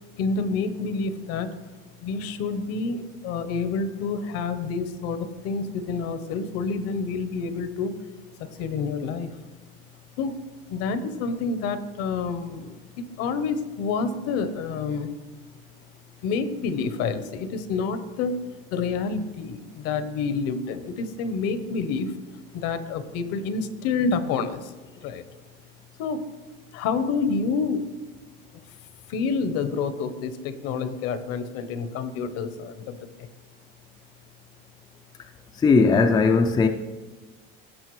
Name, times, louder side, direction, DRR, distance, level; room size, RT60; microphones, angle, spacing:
voice 1, 0.2-1.6 2.0-8.0 8.4-9.3 10.2-10.4 10.7-15.1 16.2-18.4 18.7-22.2 22.5-24.7 25.0-25.2 26.0-26.3 26.7-27.9 29.1-33.3, left 4 dB, 55° left, 0.9 m, -28 dB
voice 2, 35.6-36.7, left 4 dB, 15° left, 0.4 m, -18 dB
17.0 x 6.4 x 3.1 m
supercardioid pair, 130°, 29 cm